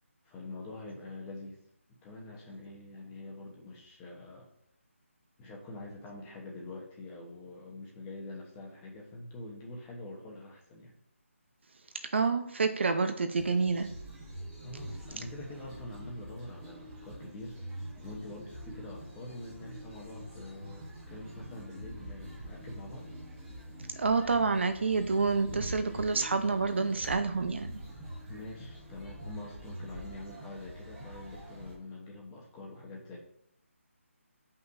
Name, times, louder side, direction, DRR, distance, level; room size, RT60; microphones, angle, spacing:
voice 1, 0.2-1.6 2.0-4.5 5.4-10.9 14.6-23.1 28.3-33.2, left 2 dB, 10° left, -1 dB, 1.0 m, -45 dB
voice 2, 12.1-13.9 24.0-27.8, right 4 dB, 55° right, 8 dB, 0.7 m, -28 dB
sound 1, 13.3-31.8, right 1 dB, 10° right, 1.1 m, -45 dB
7.8 x 5.5 x 2.7 m, 0.74 s
figure-of-eight pair, 170°, 7 cm